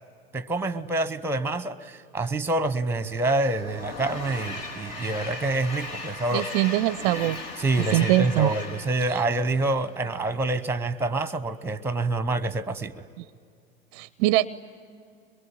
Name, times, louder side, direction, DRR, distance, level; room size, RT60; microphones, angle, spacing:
voice 1, 0.3-6.5 7.6-13.0, right 2 dB, 5° right, 16 dB, 0.9 m, -27 dB
Train, 2.7-10.2, left 2 dB, 60° left, 3.8 m, -38 dB
voice 2, 6.3-7.4 7.9-8.5 9.1-9.2 13.2-13.3 13.9-14.5, right 16 dB, 45° right, 19 dB, 0.5 m, -23 dB
23.0 x 22.5 x 9.8 m, 2.3 s
figure-of-eight pair, 85°, 32 cm